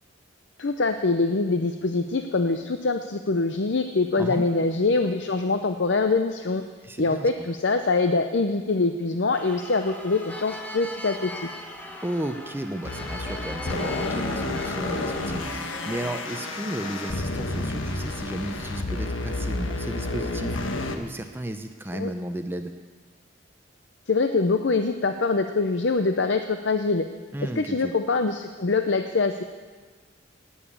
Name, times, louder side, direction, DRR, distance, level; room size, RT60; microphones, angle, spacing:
voice 1, 0.6-6.6 7.0-11.5 21.9-22.1 24.1-27.1 27.4-29.4, left 3 dB, 65° left, 7 dB, 0.6 m, -24 dB
voice 2, 6.8-7.5 12.0-20.6 20.9-22.7 27.3-27.9, right 1 dB, 10° right, 7 dB, 0.6 m, -34 dB
sound 1, 9.3-17.1, left 1 dB, 10° left, 1.2 m, -39 dB
sound 2, 12.8-21.0, left 2 dB, 80° left, 1.4 m, -30 dB
18.5 x 7.2 x 8.5 m, 1.5 s
head